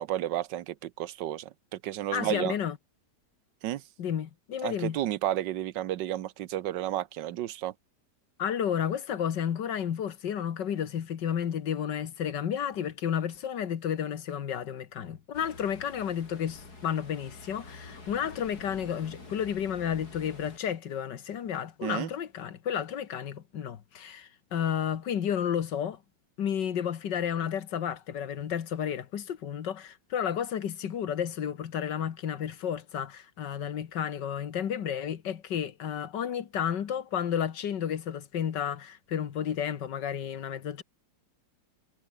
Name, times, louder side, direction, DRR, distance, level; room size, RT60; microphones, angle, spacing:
voice 1, 0.0-2.5 3.6-3.8 4.6-7.7 21.8-22.1, right 13 dB, 90° right, 1.5 m, -32 dB
voice 2, 2.1-2.8 4.0-5.0 8.4-26.0 26.4-40.8, left 8 dB, 80° left, 2.0 m, -32 dB
Ocean, 15.3-20.6, left 3 dB, 60° left, 5.1 m, -48 dB
omnidirectional pair, 1.9 m